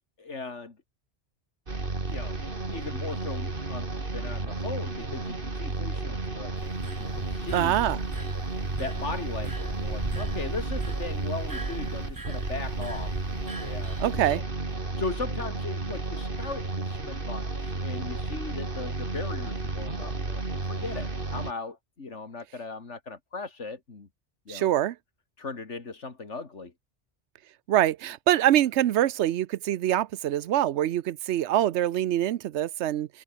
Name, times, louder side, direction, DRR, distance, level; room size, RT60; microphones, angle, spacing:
voice 1, 0.2-0.8 2.1-2.4 2.7-7.8 8.8-13.1 13.6-14.4 15.0-20.4 20.7-24.1 24.5-24.7 25.4-26.7, left 4 dB, 90° left, 2.9 m, -38 dB
sound 1, 1.7-21.5, right 3 dB, 50° right, 3.0 m, -33 dB
sound 2, 6.6-14.4, right 2 dB, 20° right, 1.3 m, -38 dB
voice 2, 7.5-8.0 14.0-14.4 24.5-24.9 27.7-33.1, right 12 dB, 75° right, 0.9 m, -24 dB
omnidirectional pair, 1.2 m